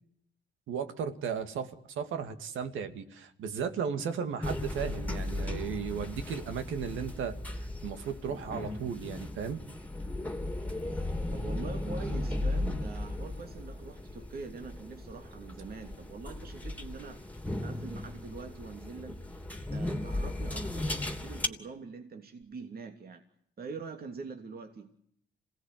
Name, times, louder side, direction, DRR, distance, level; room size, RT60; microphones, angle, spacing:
voice 1, 0.7-9.6, right 7 dB, 80° right, 9 dB, 2.5 m, -35 dB
sound 1, 4.4-21.5, left 1 dB, 10° left, 3.1 m, -36 dB
voice 2, 11.3-17.2 17.6-19.2 19.7-23.2 23.6-24.9, right 4 dB, 50° right, 5 dB, 3.0 m, -44 dB
27.0 x 17.5 x 9.5 m, 0.70 s
cardioid pair, 90°, 20 cm